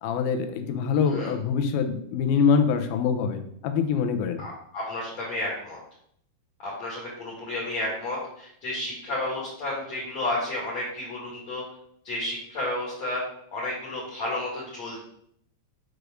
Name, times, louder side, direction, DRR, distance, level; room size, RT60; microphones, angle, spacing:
voice 1, 0.0-4.4, left 6 dB, 85° left, 7 dB, 2.7 m, -24 dB
voice 2, 4.4-5.8 6.6-11.6 12.0-13.2 13.5-15.0, left 1 dB, 50° left, -5 dB, 3.0 m, -32 dB
6.5 x 5.0 x 6.3 m, 0.70 s
omnidirectional pair, 4.2 m